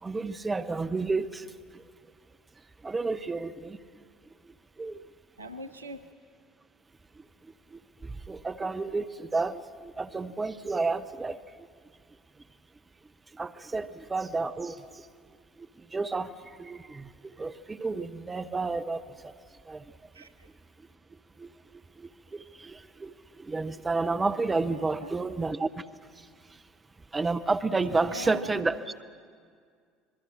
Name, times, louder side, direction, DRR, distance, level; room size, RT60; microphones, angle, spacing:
voice 1, 0.0-1.5 1.7-1.8 2.8-3.8 4.8-5.0 7.7-11.4 13.3-15.1 15.6-19.3 19.7-19.8 21.4-21.5 22.0-25.8 27.1-29.0, right 3 dB, 20° right, 10 dB, 0.8 m, -31 dB
voice 2, 5.4-6.1 20.1-20.5 24.7-25.1 28.0-28.9, equal, 85° right, 10 dB, 0.8 m, -42 dB
26.5 x 21.0 x 6.3 m, 2.1 s
figure-of-eight pair, 65°, 0 cm